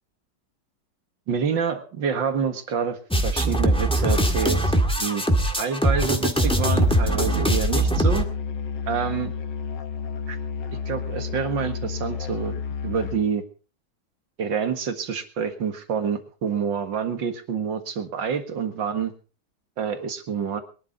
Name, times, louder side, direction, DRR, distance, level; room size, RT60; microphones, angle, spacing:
voice 1, 1.3-4.7 5.0-5.2 5.6-8.3 8.9-9.3 10.3-10.4 10.9-13.4 14.4-19.1 19.8-20.6, right 6 dB, 90° right, 8 dB, 2.4 m, -27 dB
sound 1, 3.1-8.2, right 1 dB, 5° left, 1.7 m, -21 dB
Musical instrument, 6.4-13.3, left 6 dB, 75° left, 1.9 m, -31 dB
22.5 x 12.0 x 3.9 m, 0.36 s
omnidirectional pair, 2.0 m